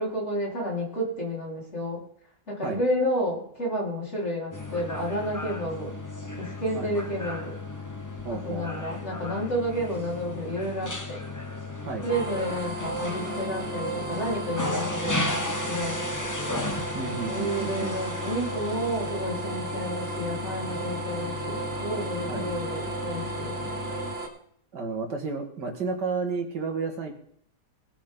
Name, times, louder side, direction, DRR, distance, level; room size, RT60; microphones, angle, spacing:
voice 1, 0.0-2.0 2.5-5.9 6.4-7.5 8.3-11.2 12.0-15.3 15.7-16.3 17.3-23.8, equal, 40° left, -4 dB, 5.0 m, -31 dB
sound 1, 4.5-24.1, left 2 dB, 15° left, 1.0 m, -35 dB
voice 2, 8.2-8.6 11.8-12.1 16.9-18.1 22.3-22.5 24.7-27.1, right 4 dB, 75° right, 3 dB, 2.6 m, -32 dB
sound 2, 12.1-24.3, right 3 dB, 35° right, 2.4 m, -34 dB
19.5 x 10.0 x 4.0 m, 0.65 s
omnidirectional pair, 1.9 m